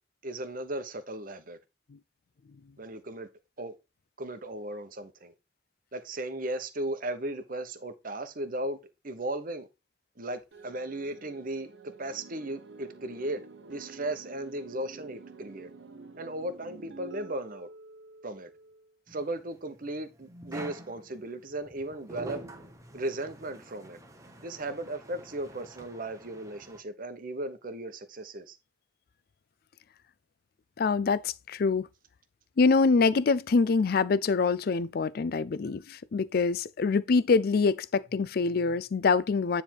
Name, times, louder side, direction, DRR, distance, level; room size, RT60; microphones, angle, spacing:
voice 1, 0.2-1.6 2.8-3.3 3.6-3.7 4.2-5.3 5.9-8.8 9.0-9.7 10.2-11.7 12.0-15.7 16.2-17.7 18.2-18.5 19.1-22.4 22.9-24.0 24.4-28.6, right 1 dB, 50° right, 1.0 m, -36 dB
sound 1, 10.5-18.9, right 3 dB, 70° right, 1.0 m, -49 dB
sound 2, 19.1-26.8, right 1 dB, 15° right, 1.0 m, -47 dB
voice 2, 30.8-31.9 32.6-39.6, left 4 dB, 55° left, 0.4 m, -25 dB
9.7 x 3.5 x 4.5 m
head